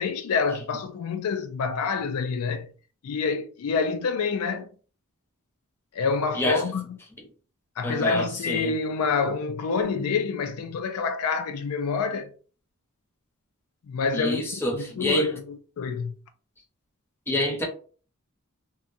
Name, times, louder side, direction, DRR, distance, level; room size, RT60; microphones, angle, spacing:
voice 1, 0.0-2.7 3.0-4.7 5.9-7.0 7.8-12.3 13.9-14.4 14.7-16.2, left 5 dB, 75° left, 0.4 m, -27 dB
voice 2, 7.8-8.7 14.1-15.3 17.3-17.6, left 1 dB, 10° left, 0.7 m, -27 dB
2.8 x 2.2 x 2.5 m
head